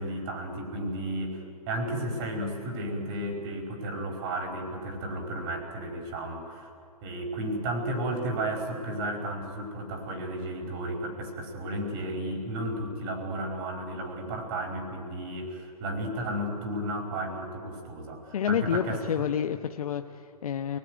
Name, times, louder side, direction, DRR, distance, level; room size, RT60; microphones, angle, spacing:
voice 1, 0.0-6.7 7.0-19.0, right 1 dB, 35° right, 4 dB, 5.0 m, -33 dB
voice 2, 18.3-20.8, left 8 dB, 60° left, 7 dB, 1.0 m, -29 dB
28.0 x 19.5 x 9.3 m, 2.4 s
hypercardioid pair, 130°, 21 cm